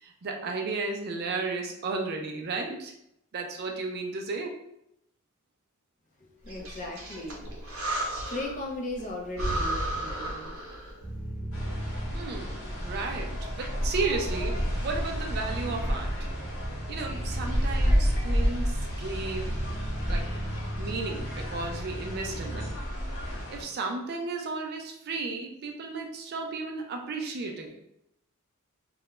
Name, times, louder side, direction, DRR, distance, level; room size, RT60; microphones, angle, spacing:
voice 1, 0.0-2.9 3.3-4.6 12.1-16.1 16.9-19.6 20.1-20.3 20.8-22.7 23.5-27.7, right 3 dB, 50° right, 2 dB, 0.4 m, -34 dB
voice 2, 6.2-7.5 7.9-10.5 11.5-11.6, left 1 dB, 35° left, 0 dB, 0.4 m, -37 dB
Breathing, 6.5-8.7 9.0-9.1 9.3-11.0, right 1 dB, 75° right, 0.7 m, -33 dB
sound 1, 11.0-22.7, right 1 dB, 5° right, 1.1 m, -37 dB
sound 2, 11.5-23.6, equal, 80° left, 0.8 m, -31 dB
2.3 x 2.1 x 2.9 m, 0.78 s
head